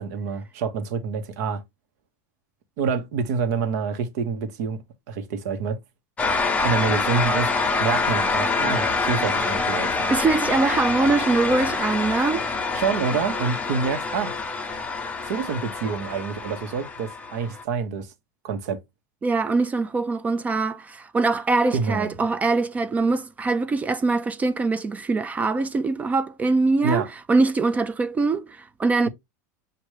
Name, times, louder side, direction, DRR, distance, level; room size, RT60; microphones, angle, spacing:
voice 1, 0.0-1.6 2.8-4.8 5.1-5.8 6.6-7.5 7.8-10.1 12.7-14.3 15.3-18.1 18.4-18.8 21.7-22.2 26.8-27.1, right 5 dB, 65° right, 1.2 m, -27 dB
sound 1, 6.2-17.6, left 4 dB, 15° left, 0.8 m, -26 dB
voice 2, 10.1-12.5 19.2-29.1, right 3 dB, 15° right, 0.3 m, -23 dB
6.4 x 2.6 x 3.1 m
supercardioid pair, 135°, 10 cm